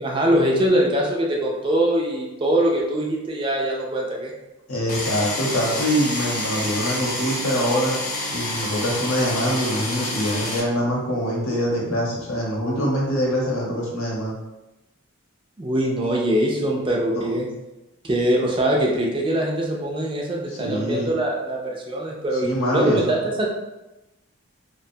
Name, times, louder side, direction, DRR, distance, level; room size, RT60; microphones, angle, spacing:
voice 1, 0.0-4.3 15.6-17.5 18.0-23.5, right 1 dB, 25° right, -1 dB, 0.3 m, -22 dB
voice 2, 4.7-7.9 8.3-14.3 17.1-17.3 20.5-21.1 22.4-23.2, equal, 85° left, -4 dB, 0.8 m, -24 dB
sound 1, 4.9-10.6, left 2 dB, 40° left, 0.5 m, -28 dB
2.4 x 2.2 x 2.6 m, 0.98 s
head